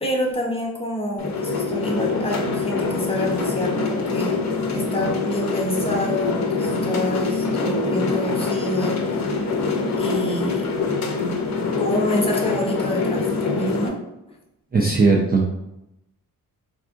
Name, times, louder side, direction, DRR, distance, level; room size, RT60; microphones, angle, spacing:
voice 1, 0.0-4.4 4.7-9.5 10.0-10.7 11.8-14.0, left 1 dB, 15° left, -2 dB, 0.8 m, -27 dB
sound 1, 1.2-13.9, left 3 dB, 50° left, 0.6 m, -24 dB
voice 2, 14.7-15.5, right 3 dB, 25° right, -2 dB, 0.4 m, -18 dB
3.7 x 2.4 x 2.5 m, 0.89 s
cardioid pair, 85°, 35 cm